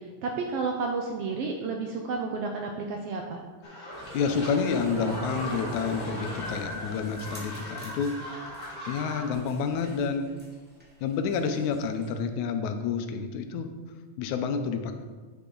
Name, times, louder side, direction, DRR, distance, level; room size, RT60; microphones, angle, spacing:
voice 1, 0.0-3.4, right 4 dB, 75° right, 2 dB, 1.4 m, -31 dB
sound 1, 3.6-9.3, equal, 20° left, 1.8 m, -39 dB
sound 2, 3.9-12.1, equal, 5° right, 1.0 m, -43 dB
voice 2, 4.1-8.3 8.8-10.3 11.0-13.7 14.2-14.9, left 5 dB, 85° left, 7 dB, 2.1 m, -29 dB
8.6 x 7.0 x 3.8 m, 1.4 s
omnidirectional pair, 3.3 m